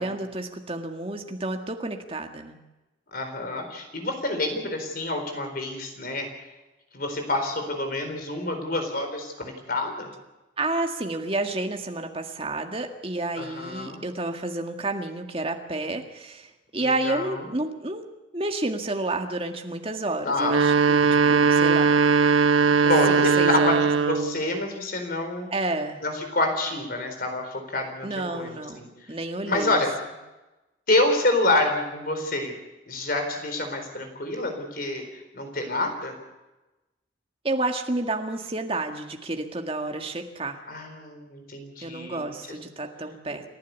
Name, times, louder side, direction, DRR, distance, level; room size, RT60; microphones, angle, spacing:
voice 1, 0.0-2.6 10.6-18.0 18.3-22.0 22.8-23.8 25.5-26.0 28.0-29.8 37.4-40.6 41.8-43.4, right 2 dB, 30° right, 4 dB, 1.8 m, -30 dB
voice 2, 3.1-6.3 6.9-10.1 13.4-14.0 17.0-17.5 20.2-20.6 21.0-21.6 22.7-25.5 26.0-29.2 29.5-29.9 30.9-32.5 32.9-36.1 40.7-42.6 43.3-43.4, left 2 dB, 50° left, 5 dB, 4.3 m, -28 dB
sound 1, 20.4-24.4, right 5 dB, 85° right, 1.0 m, -19 dB
29.5 x 11.5 x 8.3 m, 1.0 s
head